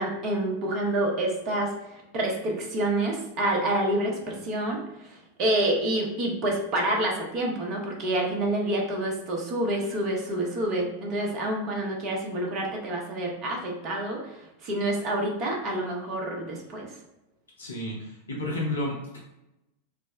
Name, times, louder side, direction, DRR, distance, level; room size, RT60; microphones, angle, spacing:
voice 1, 0.0-16.9, right 1 dB, 35° right, -1 dB, 0.8 m, -28 dB
voice 2, 17.6-19.2, left 1 dB, 75° left, -4 dB, 0.7 m, -31 dB
3.4 x 2.1 x 3.3 m, 0.93 s
figure-of-eight pair, 90°, 0 cm